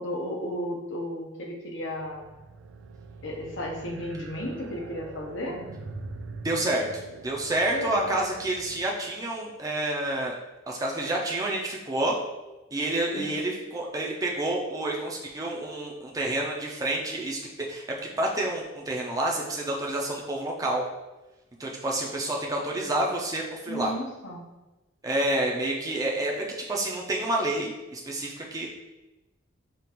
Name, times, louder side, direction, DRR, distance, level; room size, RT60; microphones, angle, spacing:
voice 1, 0.0-2.2 3.2-5.6 7.7-8.1 13.1-13.3 23.7-24.4, left 1 dB, 65° left, -1 dB, 0.8 m, -34 dB
sound 1, 1.8-9.3, right 3 dB, 75° right, 0.4 m, -44 dB
voice 2, 6.4-10.3 10.7-12.2 12.7-17.4 17.7-17.8 18.2-20.9 21.6-23.9 25.0-26.3 26.7-28.8, right 1 dB, 15° right, -2 dB, 0.5 m, -29 dB
5.1 x 2.4 x 2.9 m, 1.1 s
head